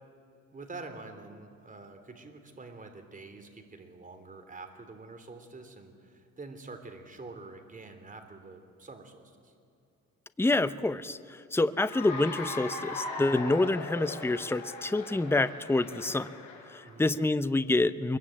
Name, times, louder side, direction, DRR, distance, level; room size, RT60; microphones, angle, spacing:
voice 1, 0.5-9.5 16.8-17.1, right 3 dB, 25° right, 6 dB, 3.5 m, -46 dB
voice 2, 10.4-16.3 16.7-18.2, left 2 dB, 10° left, 13 dB, 0.8 m, -27 dB
Cheering / Applause, 11.7-16.9, left 3 dB, 90° left, 4.5 m, -39 dB
25.0 x 22.5 x 8.8 m, 2.6 s
cardioid pair, 90°, 30 cm